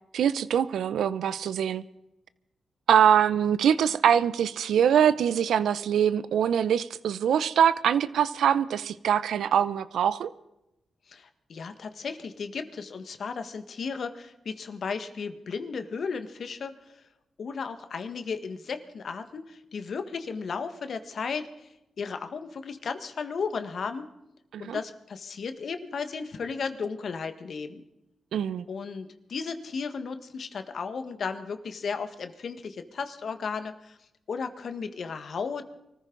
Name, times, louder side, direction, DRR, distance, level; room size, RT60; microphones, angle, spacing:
voice 1, 0.1-1.8 2.9-10.3 24.5-24.8 28.3-28.7, right 9 dB, 90° right, 0.6 m, -23 dB
voice 2, 11.1-17.0 17.4-21.7 22.0-24.0 24.6-27.8 28.7-34.0 34.3-35.6, left 5 dB, 70° left, 1.5 m, -35 dB
24.5 x 14.5 x 4.0 m
cardioid pair, 60°, 0 cm